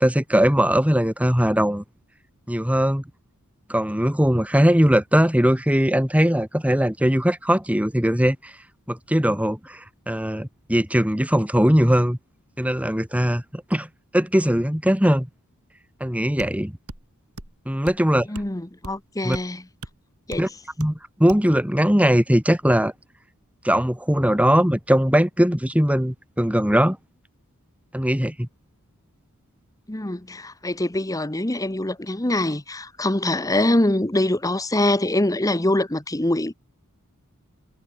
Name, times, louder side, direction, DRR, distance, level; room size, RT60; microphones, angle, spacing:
voice 1, 0.0-1.8 2.5-3.0 3.7-8.4 8.9-9.8 10.1-12.2 12.6-13.9 14.1-15.3 16.0-16.7 17.7-18.3 19.2-19.4 20.4-20.5 20.8-22.9 23.6-27.0 27.9-28.5, equal, 5° right, 2.4 m, -20 dB
sound 1, 16.9-17.1 17.4-17.6 17.9-18.0 18.4-18.5 18.8-19.0 19.3-19.5 19.8-20.0 20.3-20.5 20.8-21.0 21.3-21.5, right 2 dB, 75° right, 4.1 m, -38 dB
voice 2, 18.3-19.6 20.3-20.5 29.9-36.5, left 1 dB, 15° left, 1.2 m, -24 dB
head